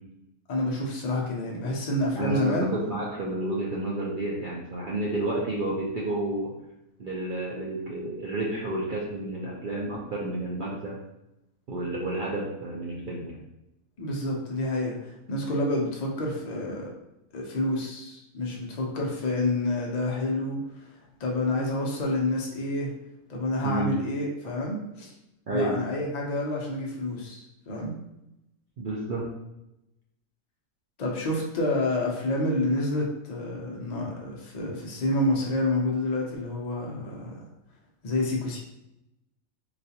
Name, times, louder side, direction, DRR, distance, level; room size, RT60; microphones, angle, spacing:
voice 1, 0.5-2.7 14.0-16.9 17.3-20.8 21.2-22.9 23.3-25.1 25.5-27.9 31.0-37.3 38.0-38.6, left 1 dB, 80° left, -2 dB, 0.3 m, -28 dB
voice 2, 2.2-6.5 7.0-11.0 11.7-13.4 23.6-23.9 25.5-25.8 28.8-29.2, right 2 dB, 75° right, -5 dB, 0.4 m, -30 dB
4.0 x 2.3 x 2.7 m, 0.88 s
omnidirectional pair, 1.6 m